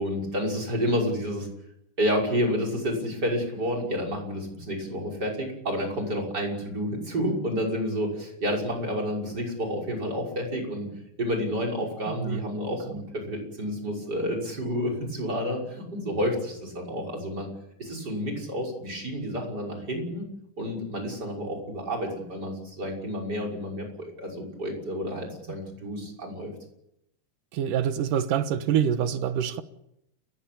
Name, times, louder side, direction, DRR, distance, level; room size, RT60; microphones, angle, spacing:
voice 1, 0.0-1.5 2.0-10.9 11.2-17.5 17.8-20.3 20.6-26.5, equal, 30° right, 6.5 m, -30 dB
voice 2, 12.1-12.4 27.5-29.6, right 9 dB, 80° right, 2.8 m, -26 dB
29.5 x 16.0 x 8.7 m
omnidirectional pair, 3.8 m